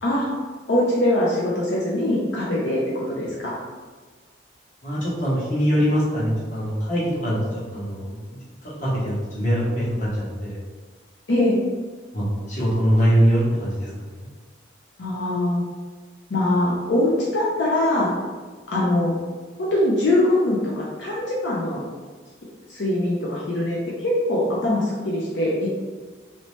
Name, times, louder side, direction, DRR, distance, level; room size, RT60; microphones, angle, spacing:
voice 1, 0.7-3.6 11.3-11.6 15.0-15.6 16.3-18.1 18.7-19.1 19.6-21.9 22.7-25.7, left 1 dB, 70° left, -5 dB, 0.6 m, -22 dB
voice 2, 4.8-8.2 8.6-10.6 12.1-13.9 14.1-14.3, equal, 40° left, -7 dB, 1.1 m, -23 dB
3.1 x 2.8 x 3.1 m, 1.4 s
head